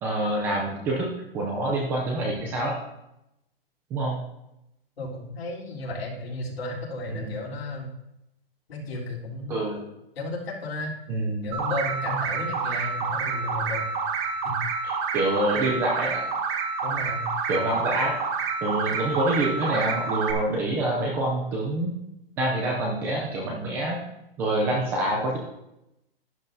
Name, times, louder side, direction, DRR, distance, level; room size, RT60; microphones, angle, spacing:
voice 1, 0.0-2.8 3.9-4.2 7.1-7.3 9.5-9.8 11.1-11.6 14.8-16.2 17.5-18.1 18.6-21.9 22.4-24.0 24.4-25.4, right 1 dB, 5° right, -1 dB, 0.4 m, -26 dB
voice 2, 5.0-7.9 8.7-9.6 10.1-10.9 11.4-13.9 14.4-14.6 16.8-17.3, left 1 dB, 75° left, -3 dB, 3.5 m, -33 dB
sound 1, 11.5-20.3, right 5 dB, 25° right, 1.1 m, -28 dB
11.5 x 10.5 x 2.7 m, 0.88 s
hypercardioid pair, 160°, 30 cm